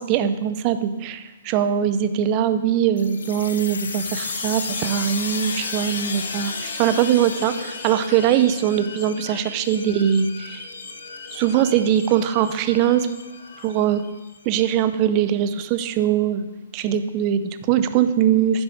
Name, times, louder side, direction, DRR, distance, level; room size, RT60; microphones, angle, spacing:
voice 1, 0.0-10.6 11.3-13.1 13.6-14.0 14.4-16.5 16.7-18.6, right 9 dB, 30° right, 11 dB, 0.6 m, -21 dB
sound 1, 3.0-14.4, left 4 dB, 70° left, 1.1 m, -33 dB
9.6 x 4.8 x 6.4 m, 1.1 s
hypercardioid pair, 140°, 0 cm